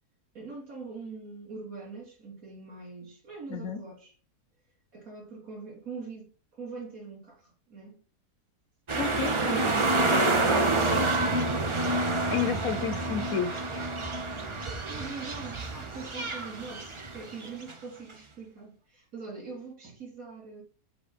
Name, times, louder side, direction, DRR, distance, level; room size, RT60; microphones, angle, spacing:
voice 1, 0.3-4.1 4.9-8.0 9.5-11.3 14.6-20.6, right 4 dB, 60° right, 2.6 m, -42 dB
voice 2, 8.9-9.3 10.0-10.3 12.3-13.5, left 7 dB, 65° left, 1.0 m, -31 dB
sound 1, 8.9-17.7 18.1-18.2, right 2 dB, 40° right, 0.4 m, -28 dB
7.8 x 2.7 x 5.1 m
omnidirectional pair, 1.7 m